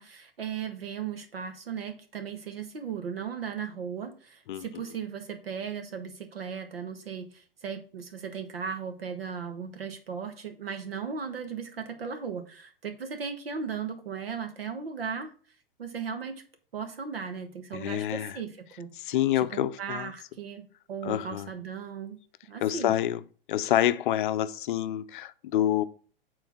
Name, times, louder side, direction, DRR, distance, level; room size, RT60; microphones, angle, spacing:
voice 1, 0.0-15.3 15.8-16.4 16.7-18.9 19.5-22.2 22.5-22.9, right 6 dB, 80° right, 1.4 m, -37 dB
voice 2, 4.5-4.8 17.7-18.4 19.0-20.1 21.0-21.5 22.6-23.2 23.5-25.8, left 12 dB, 55° left, 0.5 m, -27 dB
7.1 x 3.9 x 4.6 m
hypercardioid pair, 110°, 29 cm